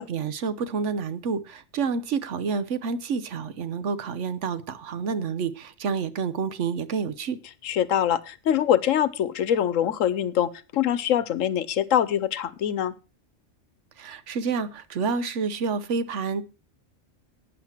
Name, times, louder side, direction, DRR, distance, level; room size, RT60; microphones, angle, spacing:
voice 1, 0.0-7.4 14.0-16.4, right 5 dB, 70° right, 1.2 m, -29 dB
voice 2, 7.6-12.9, left 10 dB, 85° left, 1.1 m, -24 dB
11.5 x 9.2 x 4.4 m
omnidirectional pair, 1.3 m